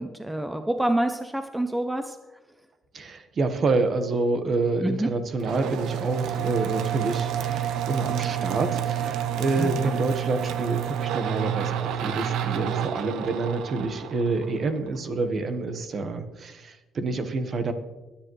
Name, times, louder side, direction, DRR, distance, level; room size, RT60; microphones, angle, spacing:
voice 1, 0.0-2.2 4.8-5.1 9.6-9.9, right 1 dB, 5° right, 7 dB, 0.7 m, -27 dB
voice 2, 2.9-17.7, right 3 dB, 40° right, 8 dB, 1.3 m, -28 dB
sound 1, 5.4-15.0, right 9 dB, 90° right, 0.9 m, -29 dB
21.0 x 10.0 x 3.2 m, 1.1 s
cardioid pair, 135°, 0 cm